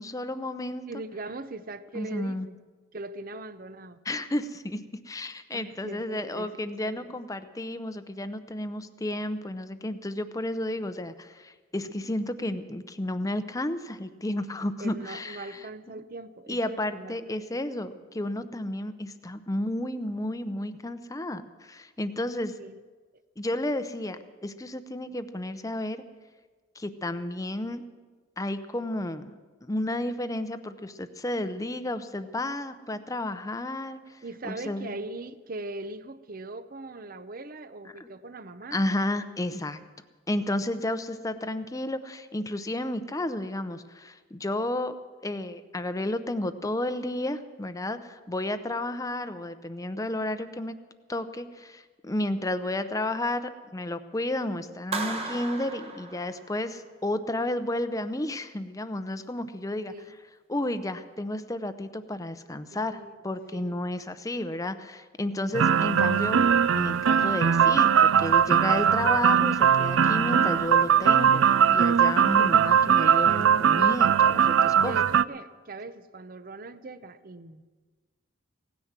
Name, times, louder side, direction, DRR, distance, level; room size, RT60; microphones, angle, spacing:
voice 1, 0.0-0.9 1.9-2.5 4.0-15.7 16.5-22.6 23.4-26.0 26.8-27.8 28.4-29.3 29.6-34.9 38.0-38.1 38.7-39.8 40.3-44.9 45.2-50.8 51.1-59.9 60.5-66.4 66.7-71.4 71.7-75.0, left 1 dB, 15° left, 11 dB, 0.6 m, -32 dB
voice 2, 0.9-2.6 2.9-4.0 5.5-7.2 14.8-17.6 22.6-22.8 34.2-38.8 59.9-60.2 62.7-63.2 63.5-63.6 65.4-65.5 72.4-72.6 74.6-77.6, right 2 dB, 45° right, 12 dB, 0.7 m, -41 dB
Clapping, 54.9-56.8, right 3 dB, 30° right, 1.2 m, -35 dB
sound 1, 65.5-75.2, right 8 dB, 75° right, 0.4 m, -20 dB
17.0 x 10.0 x 7.4 m, 1.4 s
head